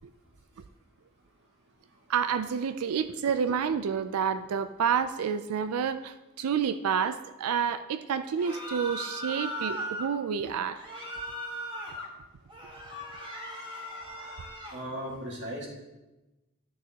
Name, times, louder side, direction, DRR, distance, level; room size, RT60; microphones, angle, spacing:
voice 1, 2.1-10.9, right 7 dB, 80° right, 11 dB, 0.4 m, -29 dB
sound 1, 8.3-10.1 10.7-12.1 12.5-14.8, equal, 20° right, 1.6 m, -38 dB
voice 2, 14.7-15.7, equal, 55° right, -2 dB, 2.0 m, -36 dB
11.0 x 6.2 x 2.9 m, 1.1 s
head